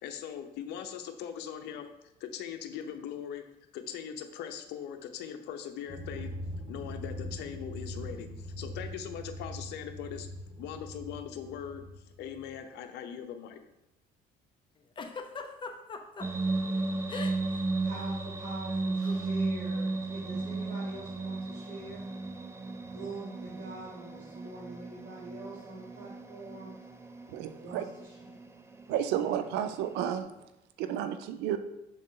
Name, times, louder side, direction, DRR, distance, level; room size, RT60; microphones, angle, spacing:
voice 1, 0.0-1.9 2.2-3.5 3.7-6.3 6.7-10.3 10.6-11.8 12.2-13.6, left 8 dB, 80° left, 7 dB, 0.7 m, -40 dB
sound 1, 5.9-12.6, left 1 dB, 10° left, 2.0 m, -41 dB
Giggle, 15.0-16.3 17.1-17.6 17.9-18.1 19.0-19.2, left 4 dB, 30° left, 0.6 m, -39 dB
sound 2, 16.2-30.2, right 3 dB, 15° right, 0.5 m, -35 dB
voice 2, 17.8-22.1 22.9-26.8 27.6-28.4, right 2 dB, 55° right, -6 dB, 2.1 m, -44 dB
voice 3, 27.3-27.8 28.9-30.3 30.8-31.6, right 10 dB, 90° right, 9 dB, 0.5 m, -31 dB
6.5 x 3.8 x 3.8 m, 0.92 s
cardioid pair, 110°, 17 cm